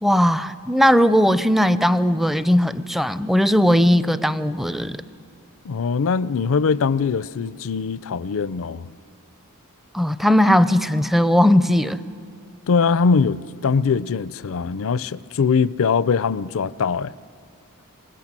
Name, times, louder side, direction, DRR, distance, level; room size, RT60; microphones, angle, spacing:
voice 1, 0.0-5.0 9.9-12.0, equal, ahead, 0.5 m, -18 dB
voice 2, 5.6-8.9 12.7-17.1, left 5 dB, 65° left, 0.5 m, -22 dB
26.0 x 20.0 x 7.4 m
head